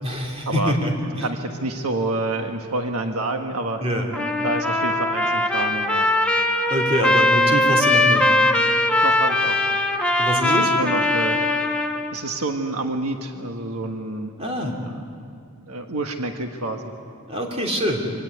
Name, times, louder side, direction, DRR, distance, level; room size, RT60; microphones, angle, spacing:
voice 1, 0.0-0.9 1.2-1.3 3.8-4.1 6.7-8.2 10.2-10.7 14.4-14.7 17.3-18.0, equal, 25° right, 0 dB, 3.0 m, -24 dB
voice 2, 1.2-3.8 4.4-6.1 9.0-9.8 10.4-11.4 12.1-14.3 14.8-14.9 15.7-16.9, right 2 dB, 75° right, 4 dB, 1.4 m, -28 dB
Trumpet, 4.1-12.2, left 1 dB, 5° left, 1.1 m, -20 dB
25.5 x 17.0 x 9.8 m, 2.4 s
head